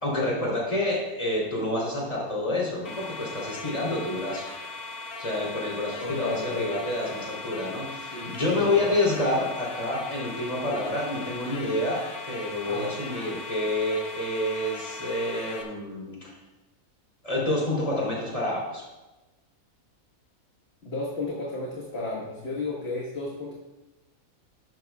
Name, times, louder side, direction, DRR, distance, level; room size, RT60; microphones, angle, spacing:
voice 1, 0.0-4.5 5.2-12.0 12.3-16.3 17.2-18.8, left 1 dB, 25° left, -4 dB, 3.5 m, -28 dB
sound 1, 2.8-15.6, left 3 dB, 85° left, 2.0 m, -39 dB
voice 2, 6.0-6.7 8.1-9.0 12.7-12.9 20.8-23.5, left 3 dB, 45° left, -3 dB, 1.7 m, -33 dB
12.0 x 12.0 x 2.4 m, 1.1 s
omnidirectional pair, 1.5 m